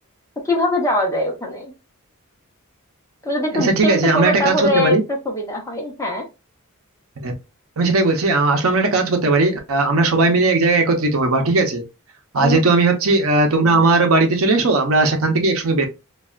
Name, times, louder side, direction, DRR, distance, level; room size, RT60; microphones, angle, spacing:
voice 1, 0.4-1.7 3.2-5.0 5.2-6.2 12.4-12.6, left 1 dB, 15° left, 0.8 m, -22 dB
voice 2, 3.5-5.0 7.2-7.3 7.8-11.8 12.3-15.9, right 3 dB, 75° right, 0.7 m, -17 dB
3.2 x 2.3 x 2.3 m
head